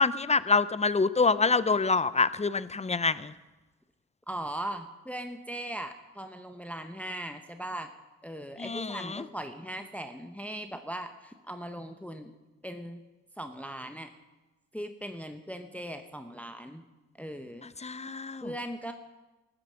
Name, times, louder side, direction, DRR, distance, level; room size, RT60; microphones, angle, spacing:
voice 1, 0.0-3.3 8.6-9.2 17.8-18.5, left 4 dB, 20° left, 17 dB, 0.6 m, -26 dB
voice 2, 4.3-7.9 8.2-12.3 12.6-13.0 13.4-14.1 14.7-16.8 17.2-17.6 18.4-18.9, right 1 dB, 5° left, 7 dB, 1.0 m, -39 dB
14.0 x 9.0 x 6.3 m, 1.1 s
supercardioid pair, 50°, 35 cm